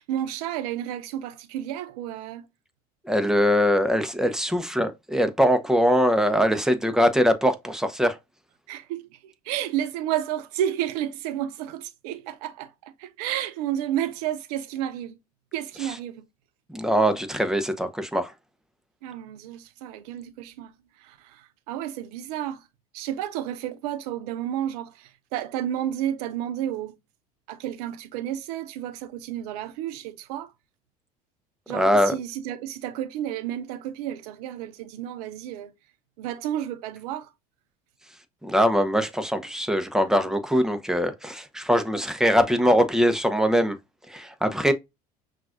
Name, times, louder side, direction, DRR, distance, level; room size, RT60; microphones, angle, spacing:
voice 1, 0.0-2.4 8.7-15.2 15.5-16.2 19.0-20.7 21.0-22.7 22.9-26.9 27.5-30.5 31.7-35.7 36.2-37.3, right 11 dB, 75° right, 0.7 m, -31 dB
voice 2, 3.1-8.2 16.7-18.3 31.7-32.1 38.4-43.8 44.1-44.7, equal, 5° right, 0.8 m, -22 dB
5.8 x 2.5 x 2.5 m
hypercardioid pair, 80°, 20 cm